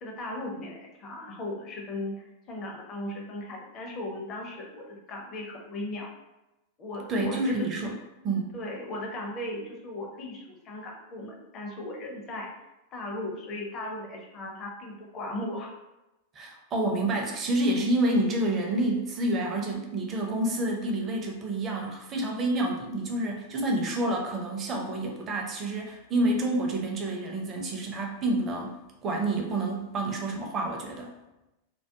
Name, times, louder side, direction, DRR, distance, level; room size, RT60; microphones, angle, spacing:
voice 1, 0.0-6.1 6.8-7.7 8.5-12.5 12.9-15.7, left 1 dB, 30° left, 0 dB, 0.6 m, -37 dB
voice 2, 7.1-8.0 8.2-8.5 16.3-28.8 29.0-31.1, right 1 dB, 30° right, 1 dB, 0.5 m, -28 dB
2.3 x 2.1 x 2.7 m, 0.98 s
figure-of-eight pair, 90°, 0 cm